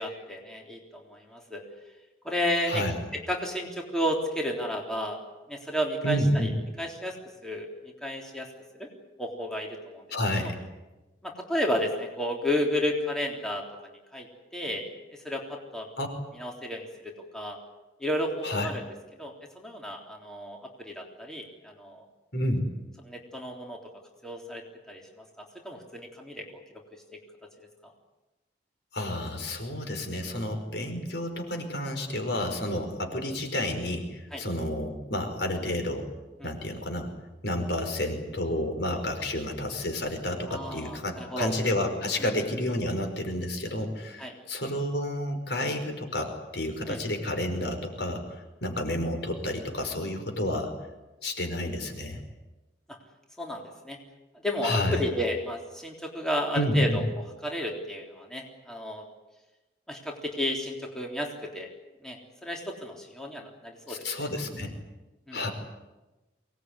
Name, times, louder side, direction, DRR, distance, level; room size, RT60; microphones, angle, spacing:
voice 1, 0.0-1.6 2.2-2.8 3.1-5.2 5.5-6.5 6.8-7.2 7.4-7.7 8.0-8.5 8.8-8.9 9.2-10.0 10.4-10.5 11.2-13.6 14.1-14.3 14.5-14.8 15.1-15.9 16.3-17.6 18.0-18.8 19.2-22.0 23.0-23.8 24.2-26.4 26.7-26.8 27.1-27.7 34.3-34.4 36.4-36.5 40.5-41.5 42.2-42.3 44.2-44.3 46.9-47.0 53.4-54.0 54.3-59.1 59.9-61.7 62.0-62.2 62.4-64.3 65.3-65.4, left 1 dB, 5° left, 0 dB, 3.6 m, -32 dB
voice 2, 6.0-6.5 10.1-10.6 16.0-16.1 18.4-18.7 22.3-22.7 28.9-36.1 36.4-37.1 37.4-50.7 51.2-52.2 54.6-55.0 56.5-57.0 63.9-64.7 65.3-65.5, left 1 dB, 75° left, 5 dB, 5.2 m, -30 dB
24.0 x 19.5 x 9.8 m, 1.1 s
head